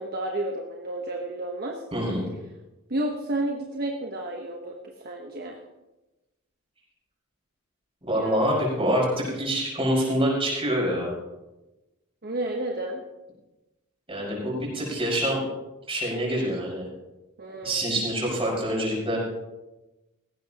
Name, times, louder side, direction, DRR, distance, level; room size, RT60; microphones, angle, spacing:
voice 1, 0.0-1.8 2.9-4.7 5.0-5.6 8.1-8.6 12.2-13.0 17.4-17.8, right 1 dB, 45° right, 1 dB, 1.2 m, -31 dB
voice 2, 1.9-2.2 8.1-11.1 14.1-15.4 15.9-16.9 17.6-19.2, equal, 25° right, -4 dB, 5.9 m, -26 dB
18.5 x 15.5 x 3.0 m, 1.0 s
head